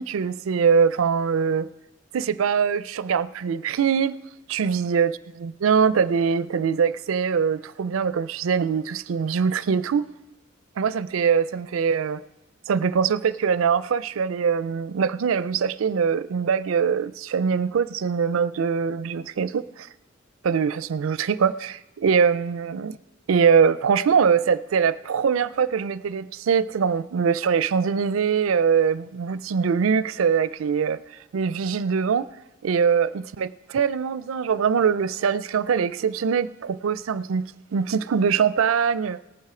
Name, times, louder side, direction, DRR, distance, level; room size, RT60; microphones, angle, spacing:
voice 1, 0.0-1.7 2.1-4.2 4.5-10.1 10.8-12.2 12.7-19.9 20.4-23.0 23.3-31.0 31.3-32.3 32.6-39.2, right 6 dB, 90° right, 0.4 m, -23 dB
18.5 x 7.4 x 4.9 m
head